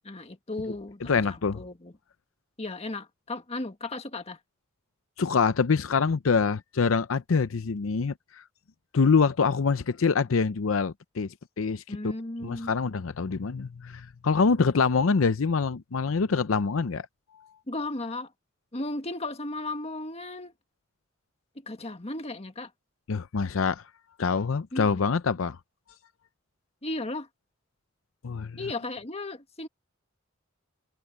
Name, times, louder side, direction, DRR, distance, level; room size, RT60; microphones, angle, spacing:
voice 1, 0.0-1.9 2.6-4.4 11.9-12.8 17.7-18.3 18.7-20.5 21.7-22.7 24.7-25.1 26.8-27.3 28.6-29.7, left 2 dB, 30° left, 1.7 m, -35 dB
voice 2, 1.0-1.6 5.2-8.1 8.9-11.3 11.6-12.1 12.4-17.1 23.1-23.8 24.2-25.6 28.2-28.6, left 5 dB, 85° left, 0.6 m, -25 dB
head